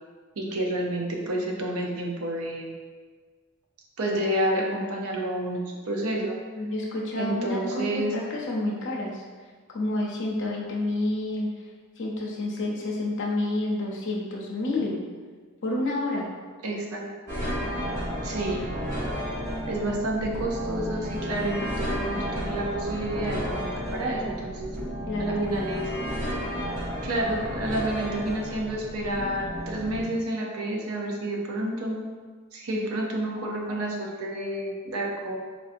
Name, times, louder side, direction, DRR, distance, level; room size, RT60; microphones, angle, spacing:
voice 1, 0.4-2.7 4.0-6.4 7.2-8.1 16.6-17.4 18.2-18.7 19.7-24.8 25.2-25.9 27.0-32.0 32.5-35.4, right 1 dB, 90° right, 0 dB, 0.6 m, -29 dB
voice 2, 6.6-9.2 9.7-11.5 12.0-15.0 15.6-16.3 25.0-25.6, left 2 dB, 55° left, -2 dB, 0.6 m, -29 dB
sound 1, 17.3-30.0, equal, 40° right, 1.3 m, -32 dB
4.4 x 2.6 x 2.5 m, 1.5 s
head